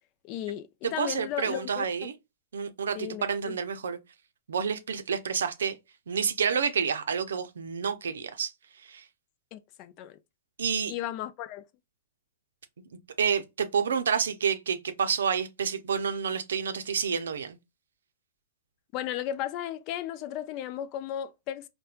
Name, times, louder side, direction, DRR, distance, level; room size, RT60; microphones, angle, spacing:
voice 1, 0.2-1.9 2.9-3.6 9.5-10.2 10.9-11.6 18.9-21.7, left 11 dB, 40° left, 0.4 m, -35 dB
voice 2, 0.8-2.1 2.5-4.0 4.5-5.8 6.1-8.5 8.8-9.0 10.6-10.9 13.2-17.6, right 6 dB, 75° right, 0.5 m, -29 dB
4.2 x 2.2 x 2.3 m
hypercardioid pair, 110°, 0 cm